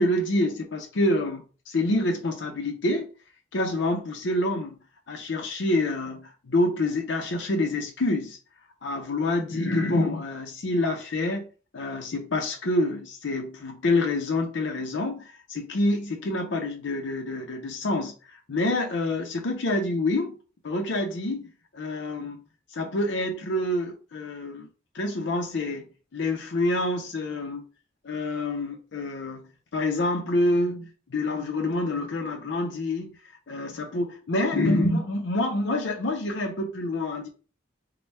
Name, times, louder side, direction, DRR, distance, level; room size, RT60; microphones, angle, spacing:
voice 1, 0.0-3.1 3.5-4.8 5.1-8.4 8.8-11.4 11.7-20.3 20.6-21.5 21.7-22.4 22.7-24.7 24.9-25.9 26.1-27.6 28.0-33.1 33.5-37.3, left 2 dB, 80° left, 0.6 m, -27 dB
3.3 x 2.2 x 4.1 m
head